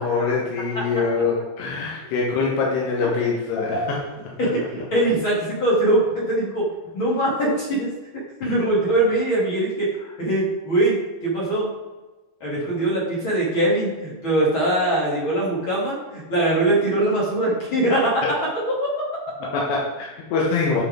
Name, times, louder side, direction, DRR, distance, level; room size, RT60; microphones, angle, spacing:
voice 1, 0.0-4.0 8.4-8.6 18.2-18.3 19.4-20.8, left 4 dB, 80° left, -3 dB, 3.4 m, -24 dB
voice 2, 4.4-6.6 6.9-7.9 8.4-9.9 10.2-11.7 12.4-18.2 18.8-18.9, right 1 dB, 35° left, -6 dB, 2.8 m, -22 dB
12.5 x 5.9 x 3.7 m, 1.2 s
omnidirectional pair, 4.8 m